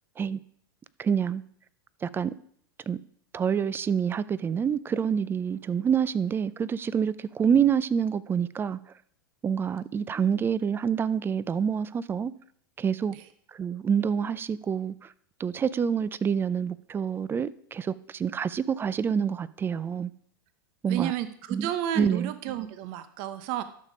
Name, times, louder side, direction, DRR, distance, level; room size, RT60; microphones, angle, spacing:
voice 1, 1.0-1.4 2.0-2.3 2.9-3.0 3.3-8.8 9.4-12.3 12.8-13.1 13.5-15.1 15.4-20.1 20.8-21.1 21.5-21.7 22.0-22.3, right 7 dB, 20° right, 0.4 m, -27 dB
voice 2, 20.9-23.6, right 12 dB, 50° right, 0.9 m, -32 dB
12.0 x 6.6 x 5.0 m
hypercardioid pair, 110°, 12 cm